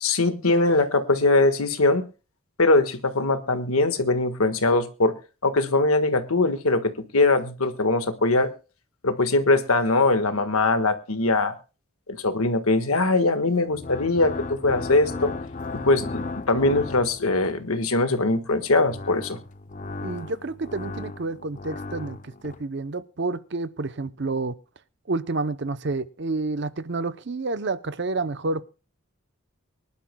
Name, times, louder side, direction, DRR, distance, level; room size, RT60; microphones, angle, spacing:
voice 1, 0.0-2.0 2.6-5.1 5.4-8.5 9.0-11.5 12.1-15.3 15.7-19.4, left 2 dB, 85° left, 9 dB, 1.5 m, -22 dB
sound 1, 13.6-17.7 18.6-22.6, left 3 dB, 35° left, 0.6 m, -35 dB
voice 2, 20.0-24.6 25.1-28.6, right 3 dB, 55° right, 15 dB, 0.7 m, -29 dB
24.0 x 11.5 x 2.2 m, 0.32 s
head